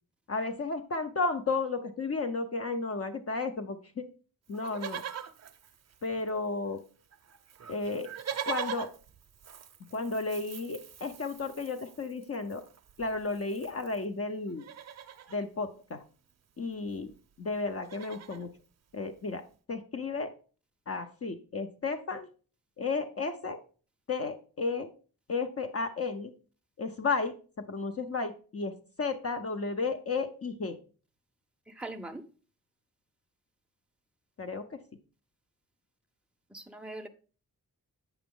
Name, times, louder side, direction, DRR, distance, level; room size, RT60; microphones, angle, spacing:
voice 1, 0.3-4.1 4.5-5.0 6.0-6.8 7.7-8.1 8.5-8.9 9.9-12.6 13.0-14.7 15.3-16.0 16.6-17.1 17.4-18.5 18.9-19.4 19.7-20.3 20.9-22.3 22.8-23.6 24.1-24.9 25.3-26.3 26.8-30.8 34.4-34.8, left 3 dB, 45° left, 0.6 m, -33 dB
Livestock farm animals working animals, 4.5-6.5 6.8-6.9 7.1-14.0 14.5-15.4 16.6-16.7 16.9-17.2 17.5-18.5 19.1-19.2, right 8 dB, 50° right, 0.6 m, -42 dB
voice 2, 31.7-32.3 36.5-37.1, right 2 dB, 5° right, 0.5 m, -41 dB
8.0 x 5.9 x 3.7 m
wide cardioid pair, 160°, 35 cm